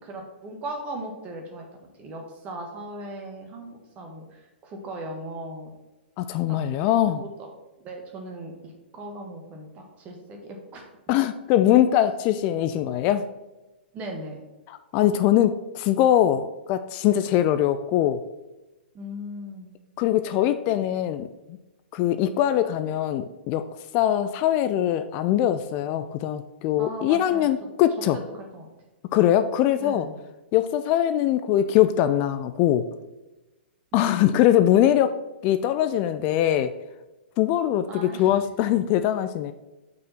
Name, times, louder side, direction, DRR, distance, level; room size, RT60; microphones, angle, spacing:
voice 1, 0.0-1.7 2.0-5.7 6.5-6.6 7.2-7.5 7.8-10.8 13.9-14.4 18.9-19.7 22.8-22.9 26.7-27.5 28.1-28.7 29.8-30.2 33.9-34.2 37.9-38.3, right 1 dB, 25° right, 2 dB, 1.5 m, -38 dB
voice 2, 6.2-7.2 11.1-13.2 14.7-18.2 20.0-21.3 21.9-23.6 23.9-28.2 29.1-30.1 30.5-32.9 33.9-35.2 35.4-36.7 37.4-39.5, left 11 dB, 30° left, 10 dB, 0.3 m, -22 dB
6.0 x 4.8 x 5.7 m, 1.0 s
figure-of-eight pair, 115°, 6 cm